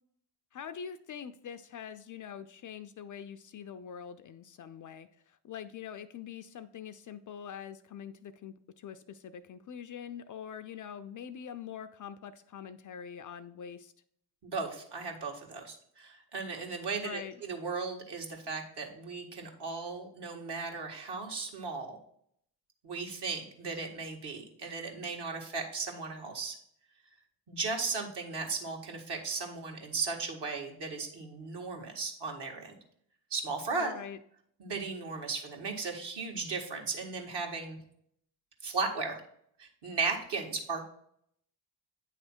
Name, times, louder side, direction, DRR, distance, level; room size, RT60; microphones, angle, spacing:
voice 1, 0.5-13.9 17.0-17.4 33.8-34.2, left 8 dB, 40° left, 10 dB, 0.5 m, -44 dB
voice 2, 14.4-22.0 22.8-26.6 27.5-32.7 33.3-33.9 34.6-37.8 38.6-39.2 39.6-40.8, right 4 dB, 55° right, 2 dB, 1.7 m, -36 dB
8.5 x 3.3 x 4.4 m, 0.68 s
supercardioid pair, 60°, 48 cm